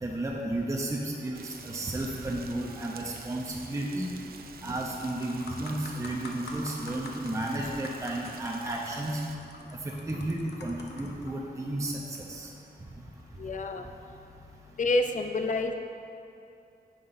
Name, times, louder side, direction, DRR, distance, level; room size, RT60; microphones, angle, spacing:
voice 1, 0.0-4.1 4.6-9.2 9.8-12.5, right 1 dB, 20° right, -2 dB, 0.6 m, -33 dB
Rain, 1.3-9.3, right 6 dB, 65° right, 0.4 m, -48 dB
sound 1, 4.3-4.5 4.9-11.3 12.0-12.2, left 2 dB, 85° left, 0.7 m, -45 dB
voice 2, 13.4-13.8 14.8-15.7, left 2 dB, 50° left, 6 dB, 0.5 m, -28 dB
9.2 x 5.7 x 2.6 m, 2.7 s
wide cardioid pair, 120°, 17 cm